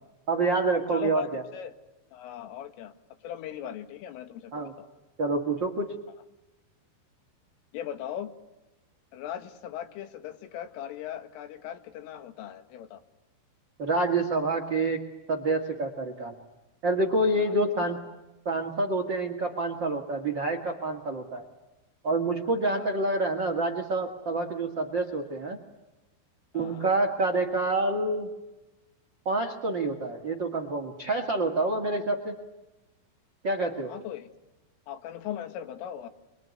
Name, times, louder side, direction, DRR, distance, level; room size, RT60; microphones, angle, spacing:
voice 1, 0.3-1.4 4.5-4.7 5.2-5.9 13.8-15.0 15.3-16.3 16.8-18.0 18.4-21.4 22.0-25.6 26.5-28.3 29.2-32.4 33.4-33.9, right 2 dB, 90° right, 6 dB, 1.0 m, -27 dB
voice 2, 0.9-1.7 2.1-2.9 3.2-4.9 7.7-8.3 9.1-13.0 17.5-17.9 22.7-22.9 26.5-26.9 33.9-34.3 34.9-36.1, left 10 dB, 85° left, 9 dB, 4.2 m, -39 dB
25.0 x 24.5 x 9.6 m, 1.0 s
omnidirectional pair, 5.7 m